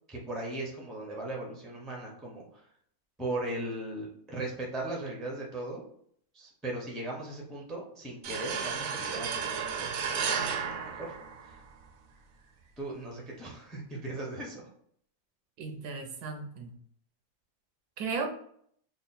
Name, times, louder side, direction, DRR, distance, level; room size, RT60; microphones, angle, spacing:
voice 1, 0.1-2.6 3.2-5.9 6.3-11.1 11.4-11.6 12.8-14.7, right 2 dB, ahead, -1 dB, 0.5 m, -38 dB
sound 1, 8.2-11.8, right 6 dB, 70° right, 0.9 m, -33 dB
voice 2, 15.6-16.7 18.0-18.3, right 4 dB, 85° right, 5 dB, 1.2 m, -35 dB
3.7 x 2.1 x 4.1 m, 0.64 s
omnidirectional pair, 1.6 m